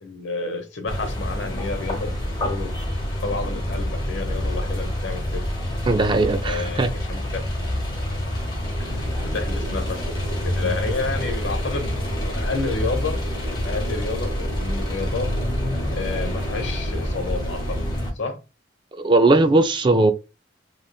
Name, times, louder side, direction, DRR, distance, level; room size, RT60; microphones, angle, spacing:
voice 1, 0.0-2.1 2.4-2.7 3.2-5.4 6.4-7.4 8.8-13.2 13.6-15.3 15.9-17.8 18.2-18.4, left 3 dB, 80° left, 0.9 m, -30 dB
sound 1, 0.9-18.1, left 1 dB, 25° left, 1.1 m, -27 dB
voice 2, 5.9-6.9 18.9-20.1, right 2 dB, 25° right, 0.4 m, -18 dB
sound 2, 8.6-17.9, right 1 dB, 60° right, 0.8 m, -33 dB
3.2 x 3.0 x 2.3 m
head